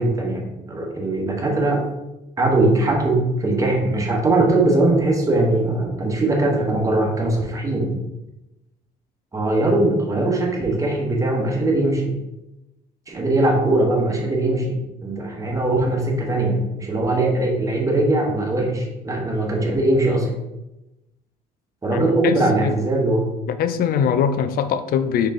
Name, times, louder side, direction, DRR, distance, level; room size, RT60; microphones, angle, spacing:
voice 1, 0.0-1.8 2.4-8.0 9.3-12.1 13.1-20.3 21.8-23.3, right 2 dB, 20° right, 1.1 m, -20 dB
voice 2, 21.9-22.7 23.5-25.3, left 7 dB, 60° left, 0.4 m, -22 dB
4.4 x 3.2 x 3.7 m
cardioid pair, 110°, 17 cm